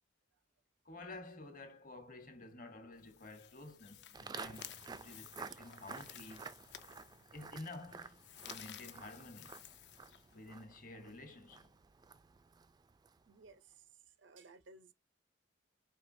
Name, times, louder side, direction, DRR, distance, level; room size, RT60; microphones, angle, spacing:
voice 1, 0.8-6.5 7.3-9.7 10.3-11.7, left 2 dB, 45° left, 1.0 m, -51 dB
sound 1, 2.9-10.6, left 11 dB, 65° left, 0.5 m, -55 dB
Walk footsteps, 4.1-13.4, right 5 dB, 20° right, 0.3 m, -52 dB
voice 2, 13.3-13.8 14.2-14.9, right 3 dB, 85° right, 0.7 m, -59 dB
4.9 x 3.2 x 2.6 m
head